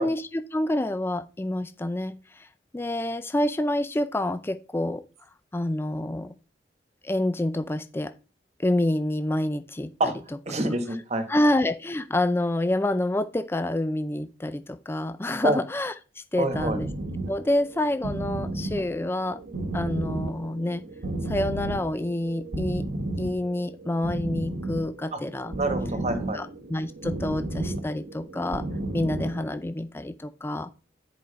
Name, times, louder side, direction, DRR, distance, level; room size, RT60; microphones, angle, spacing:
voice 1, 0.0-2.5 2.7-5.0 5.5-6.3 7.0-8.1 8.6-10.1 10.6-10.7 11.3-16.9 17.3-19.4 19.7-20.9 21.3-22.9 23.2-25.5 26.3-28.7 28.9-30.7, left 1 dB, 15° left, 11 dB, 0.4 m, -27 dB
voice 2, 10.4-11.3 15.4-15.6 16.4-16.8 25.1-25.2 25.6-26.4, right 1 dB, 40° right, 7 dB, 1.4 m, -26 dB
sound 1, 16.4-29.6, right 2 dB, 85° right, 1.1 m, -33 dB
10.0 x 4.8 x 4.1 m, 0.33 s
head